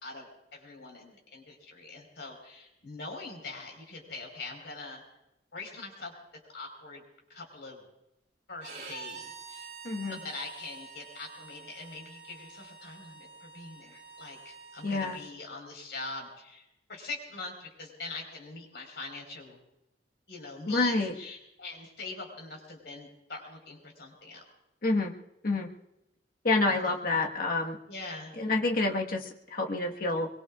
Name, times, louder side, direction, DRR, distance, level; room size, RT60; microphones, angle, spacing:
voice 1, 0.0-5.0 5.5-6.1 6.5-7.0 7.3-7.8 8.5-9.7 10.1-19.6 20.3-24.4 26.7-27.3 27.9-28.3, left 3 dB, 65° left, 1 dB, 4.6 m, -43 dB
Bowed string instrument, 8.6-15.3, right 4 dB, 45° right, 3.7 m, -47 dB
voice 2, 9.8-10.2 14.8-15.2 20.7-21.1 24.8-25.1 25.4-25.7 26.4-27.8 28.4-30.3, left 2 dB, 50° left, 1 dB, 1.5 m, -28 dB
23.0 x 23.0 x 2.5 m, 0.88 s
head